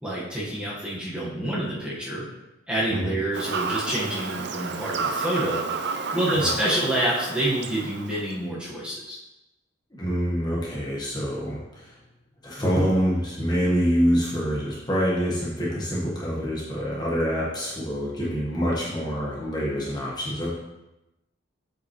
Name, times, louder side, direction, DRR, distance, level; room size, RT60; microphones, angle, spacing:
voice 1, 0.0-2.2 2.7-5.6 6.1-9.2, right 1 dB, 5° right, -7 dB, 1.4 m, -27 dB
Fowl / Bird vocalization bird call bird song, 3.3-8.3, right 4 dB, 55° right, 0.5 m, -31 dB
voice 2, 9.9-11.9 12.4-20.5, equal, 20° left, -6 dB, 1.4 m, -26 dB
7.7 x 5.2 x 3.1 m, 0.97 s
head